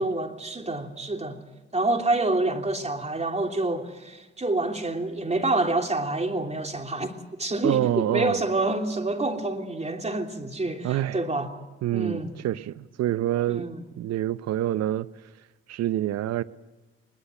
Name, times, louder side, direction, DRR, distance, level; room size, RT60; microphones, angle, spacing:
voice 1, 0.0-1.4 1.7-11.5 11.9-12.3 13.5-13.8, right 2 dB, 20° right, 3.1 m, -27 dB
voice 2, 7.6-8.4 10.8-11.2 11.8-13.7 14.0-15.1 15.7-16.4, right 13 dB, 60° right, 0.8 m, -26 dB
21.5 x 21.0 x 7.8 m
hypercardioid pair, 40°, 30 cm